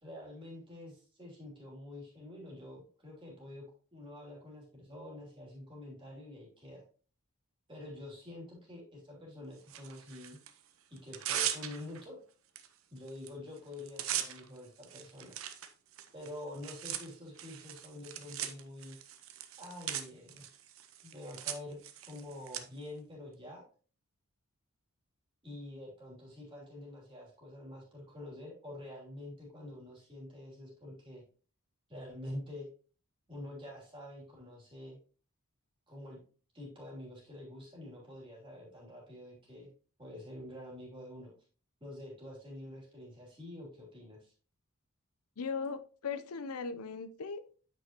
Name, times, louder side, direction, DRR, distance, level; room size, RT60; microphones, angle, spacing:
voice 1, 0.0-3.7 3.9-6.8 7.7-10.4 10.9-12.2 12.9-15.4 16.1-19.0 19.6-20.4 21.0-23.6 25.4-31.2 31.9-32.7 33.3-35.0 35.9-36.2 36.5-39.7 40.0-41.3 41.8-44.3, left 1 dB, 25° right, 2.9 m, -47 dB
Tearing, 9.7-10.5 11.0-12.0 12.6-12.7 13.0-13.3 13.6-22.6, right 10 dB, 70° right, 0.8 m, -40 dB
voice 2, 45.4-47.4, left 5 dB, 85° left, 0.6 m, -38 dB
9.1 x 5.5 x 2.9 m
head